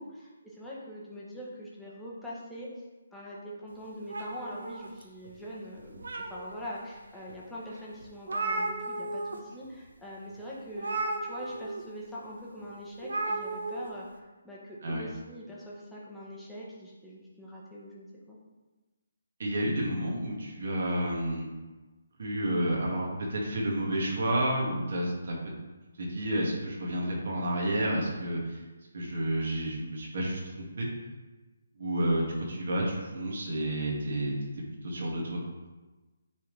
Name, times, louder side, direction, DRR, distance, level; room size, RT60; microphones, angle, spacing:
voice 1, 0.0-2.7 3.1-18.4, equal, 5° left, -7 dB, 0.9 m, -43 dB
sound 1, 4.1-5.3 5.8-6.7 7.3-7.4 7.7-7.8 8.0-9.4 9.7-9.9 10.8-11.8 13.0-13.9, right 2 dB, 85° right, 0.9 m, -34 dB
voice 2, 19.4-21.5 22.2-25.4 26.0-28.6 28.9-30.9 31.8-34.3 34.8-35.4, right 1 dB, 50° right, -3 dB, 1.9 m, -30 dB
9.4 x 3.8 x 3.3 m, 1.2 s
hypercardioid pair, 175°, 0 cm